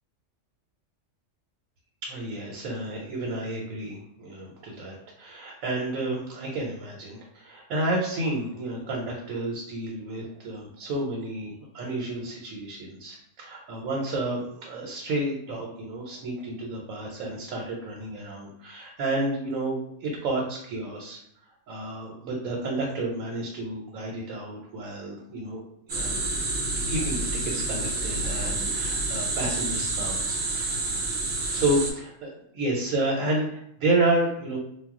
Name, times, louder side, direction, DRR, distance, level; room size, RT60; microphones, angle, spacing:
voice 1, 2.0-21.2 21.7-25.6 25.9-26.2 26.9-31.0 31.5-34.6, right 2 dB, 85° right, -2 dB, 1.0 m, -30 dB
sound 1, 25.9-31.9, right 2 dB, 55° right, 0.7 m, -28 dB
2.3 x 2.0 x 3.5 m, 0.75 s
omnidirectional pair, 1.4 m